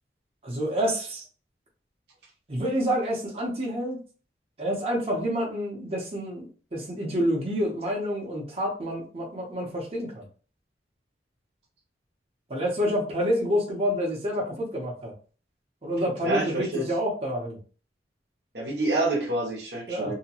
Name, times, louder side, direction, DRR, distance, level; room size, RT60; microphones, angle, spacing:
voice 1, 0.4-1.2 2.5-4.0 4.6-10.2 12.5-15.1 15.8-17.6 19.9-20.1, equal, 35° right, -3 dB, 0.8 m, -28 dB
voice 2, 16.2-16.9 18.5-20.1, right 2 dB, 70° right, -1 dB, 0.8 m, -27 dB
2.8 x 2.2 x 2.8 m, 0.39 s
head